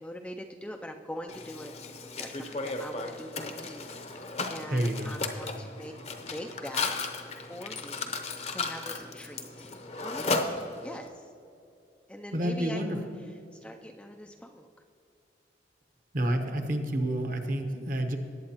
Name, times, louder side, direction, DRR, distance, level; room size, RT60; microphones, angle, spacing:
voice 1, 0.0-5.9 6.2-6.9 7.5-8.1 8.5-9.7 10.0-10.4 10.8-11.3 12.1-13.1 13.5-14.7, equal, 5° left, 3 dB, 0.3 m, -43 dB
Mechanisms, 1.3-11.1, left 3 dB, 35° left, 0.7 m, -35 dB
voice 2, 4.7-5.1 12.3-13.0 16.1-18.2, right 1 dB, 45° right, 5 dB, 1.0 m, -29 dB
19.0 x 8.5 x 2.9 m, 2.5 s
head